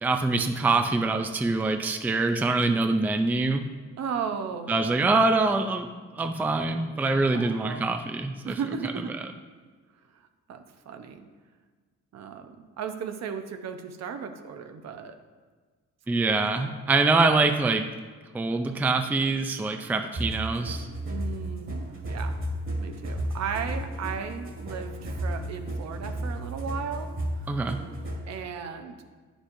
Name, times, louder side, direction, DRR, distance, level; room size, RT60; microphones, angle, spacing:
voice 1, 0.0-3.6 4.7-5.9 6.1-8.6 16.1-17.8 18.3-20.9 27.5-27.8, right 3 dB, 5° right, 6 dB, 0.4 m, -24 dB
voice 2, 4.0-5.0 7.3-7.9 8.4-9.1 10.1-11.2 12.1-15.1 21.1-22.4 22.8-27.1 27.3-27.5 28.3-29.0, right 6 dB, 60° right, 7 dB, 0.8 m, -36 dB
sound 1, 20.2-28.4, right 1 dB, 45° right, 1.9 m, -33 dB
9.7 x 6.2 x 2.7 m, 1.5 s
cardioid pair, 90°, 30 cm